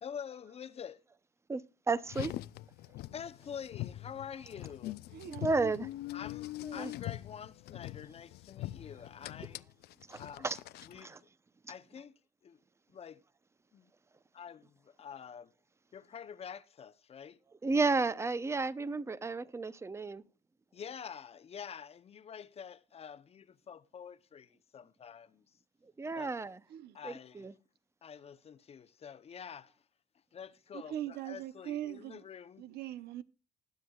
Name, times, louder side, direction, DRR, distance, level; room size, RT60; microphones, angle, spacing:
voice 1, 0.0-1.0 3.1-5.0 6.1-9.6 10.2-10.5 10.9-11.3 11.7-12.1 12.4-12.6 12.9-13.2 13.7-13.9 14.3-15.5 15.9-17.4 20.7-25.4 26.1-26.3 26.9-27.5 28.0-29.7 30.3-32.6, left 7 dB, 35° left, 0.7 m, -47 dB
voice 2, 1.9-2.3 5.4-5.9 6.6-6.9 10.1-10.6 11.0-11.2 11.6-11.7 17.6-20.2 26.0-26.6 27.0-27.5, right 3 dB, 15° right, 0.7 m, -32 dB
Car, 2.0-11.0, left 16 dB, 75° left, 0.5 m, -43 dB
voice 3, 5.1-5.7 26.7-27.0 30.7-32.3 32.6-33.2, right 12 dB, 75° right, 0.9 m, -41 dB
20.0 x 9.4 x 2.3 m
cardioid pair, 110°, 17 cm